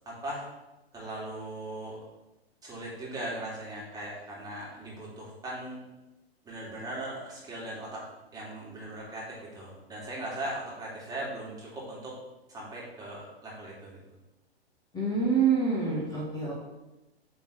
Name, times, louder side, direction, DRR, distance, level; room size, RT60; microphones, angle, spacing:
voice 1, 0.1-0.5 0.9-2.0 2.6-5.8 6.4-8.1 8.3-12.2 12.5-14.0, right 1 dB, 10° right, -6 dB, 2.5 m, -39 dB
voice 2, 14.9-16.5, right 5 dB, 10° left, -7 dB, 1.9 m, -26 dB
8.3 x 3.9 x 4.9 m, 1.0 s
figure-of-eight pair, 110°, 32 cm